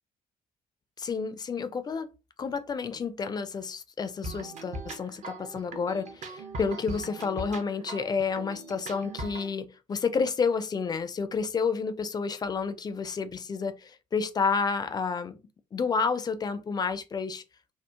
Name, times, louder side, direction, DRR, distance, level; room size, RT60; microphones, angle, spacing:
voice 1, 1.0-2.1 2.4-15.4 15.7-17.4, left 5 dB, 20° left, 0.4 m, -30 dB
sound 1, 4.2-9.5, right 2 dB, 40° right, 0.6 m, -40 dB
2.9 x 2.0 x 2.3 m
figure-of-eight pair, 50°, 19 cm